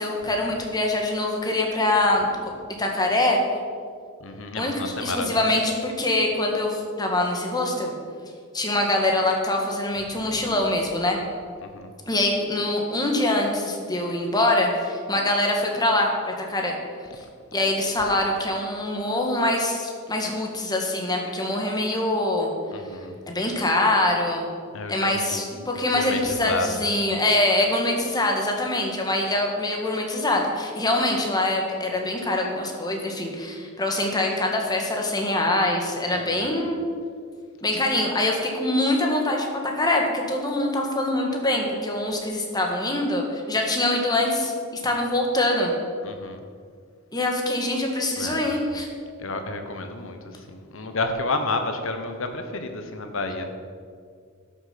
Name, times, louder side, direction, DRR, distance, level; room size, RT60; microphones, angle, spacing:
voice 1, 0.0-2.3 2.8-3.4 4.5-7.9 8.5-11.2 12.1-16.8 17.5-22.5 23.3-24.5 24.9-36.8 37.6-45.7 47.1-48.9, left 1 dB, 20° left, 1 dB, 1.6 m, -24 dB
voice 2, 4.2-5.5 10.1-10.5 11.6-11.9 22.7-23.2 24.7-25.4 25.9-26.9 36.3-36.5 46.0-46.4 48.2-48.4 49.2-53.4, left 2 dB, 70° left, 6 dB, 1.2 m, -31 dB
12.0 x 6.5 x 5.9 m, 2.1 s
head